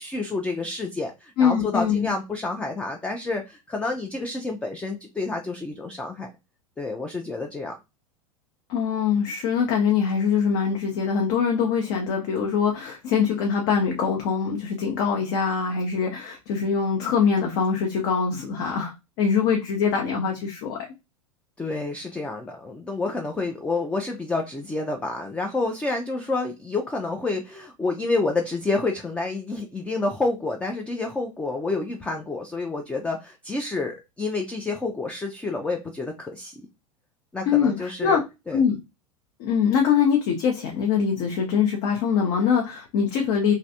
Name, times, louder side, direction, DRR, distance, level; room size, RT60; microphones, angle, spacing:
voice 1, 0.0-6.3 6.8-7.7 21.6-36.5 37.3-38.6, left 3 dB, 5° left, 0.3 m, -29 dB
voice 2, 1.4-2.1 8.7-20.9 37.5-38.2 38.5-38.8 39.4-43.5, left 6 dB, 45° left, 0.6 m, -23 dB
3.0 x 2.5 x 2.7 m
figure-of-eight pair, 85°, 18 cm